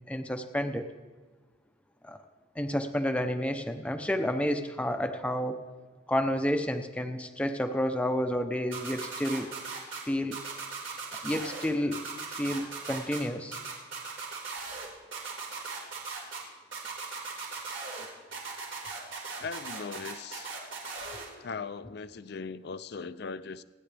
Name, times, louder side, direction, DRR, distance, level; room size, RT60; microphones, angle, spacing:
voice 1, 0.1-0.9 2.0-2.2 2.6-5.7 6.1-9.5 10.1-10.4 11.2-12.0 12.3-13.6, equal, 5° left, 0.7 m, -30 dB
sound 1, 8.7-10.0 10.3-11.6 11.9-13.2 13.5-14.9 15.1-16.4 16.7-18.0 18.3-21.2, right 4 dB, 70° right, 4.4 m, -38 dB
voice 2, 19.4-20.5 21.4-23.6, left 5 dB, 55° left, 0.5 m, -39 dB
29.0 x 9.9 x 3.4 m
head